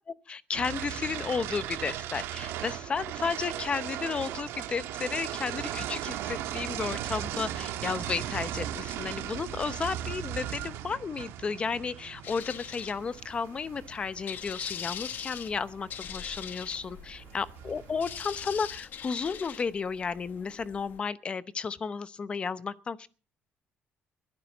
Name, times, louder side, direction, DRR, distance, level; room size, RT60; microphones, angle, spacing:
voice 1, 0.3-23.1, left 5 dB, 25° left, 0.7 m, -33 dB
sound 1, 0.5-18.8, right 12 dB, 85° right, 1.4 m, -38 dB
sound 2, 12.2-21.0, left 9 dB, 50° left, 1.1 m, -43 dB
21.5 x 11.5 x 4.0 m
cardioid pair, 155°, 4 cm